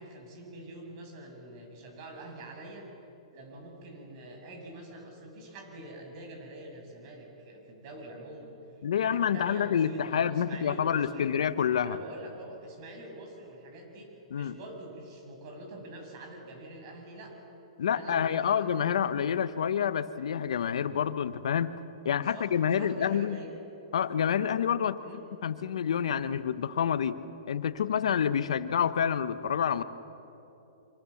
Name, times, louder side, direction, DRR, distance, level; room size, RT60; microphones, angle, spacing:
voice 1, 0.0-2.9 3.3-8.6 9.0-11.4 11.8-17.3 17.8-18.9 22.2-23.6 25.0-25.3, right 1 dB, 45° right, 2 dB, 7.5 m, -45 dB
voice 2, 8.8-12.0 14.3-14.6 17.8-21.7 22.0-23.4 23.9-25.0 25.4-27.2 27.5-29.8, left 8 dB, 75° left, 12 dB, 1.1 m, -28 dB
25.5 x 24.5 x 7.3 m, 2.9 s
hypercardioid pair, 125°, 3 cm